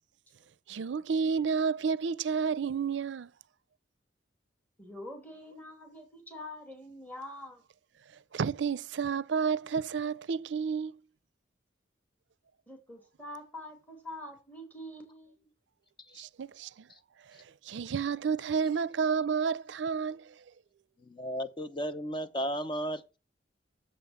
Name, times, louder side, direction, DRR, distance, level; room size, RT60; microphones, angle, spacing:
voice 1, 0.7-3.3 8.3-10.9 16.2-16.9 17.6-20.3, right 6 dB, 75° right, 0.4 m, -30 dB
voice 2, 4.8-7.6 12.7-15.5, left 1 dB, 10° left, 2.6 m, -45 dB
voice 3, 21.0-23.2, equal, 25° left, 0.7 m, -34 dB
7.4 x 7.4 x 7.8 m
head